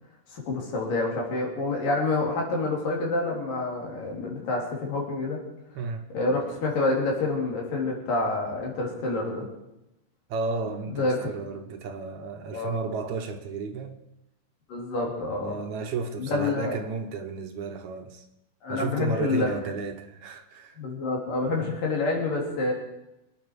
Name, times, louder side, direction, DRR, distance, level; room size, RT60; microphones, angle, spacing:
voice 1, 0.3-5.4 6.1-9.5 10.9-11.3 12.5-12.8 14.7-15.6 16.2-16.8 18.6-19.5 20.8-22.7, left 3 dB, 85° left, -1 dB, 5.1 m, -27 dB
voice 2, 5.8-6.1 10.3-14.0 15.4-18.2 18.7-20.8 21.4-21.7, right 4 dB, 70° right, 5 dB, 2.3 m, -33 dB
25.0 x 9.4 x 4.8 m, 0.88 s
omnidirectional pair, 3.8 m